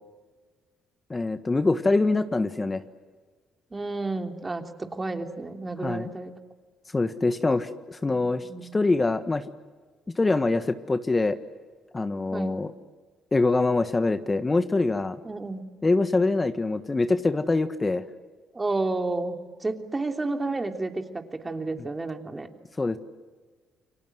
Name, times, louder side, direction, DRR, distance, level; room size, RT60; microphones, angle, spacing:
voice 1, 1.1-2.8 5.8-6.1 6.9-9.4 10.1-11.4 11.9-12.7 13.3-15.2 15.8-18.0 22.8-23.0, left 3 dB, 25° left, 10 dB, 1.5 m, -24 dB
voice 2, 3.7-6.3 8.2-8.7 12.3-12.6 15.2-15.7 18.5-22.5, right 2 dB, 25° right, 5 dB, 3.2 m, -31 dB
29.5 x 23.5 x 7.9 m, 1.4 s
supercardioid pair, 60°, 0 cm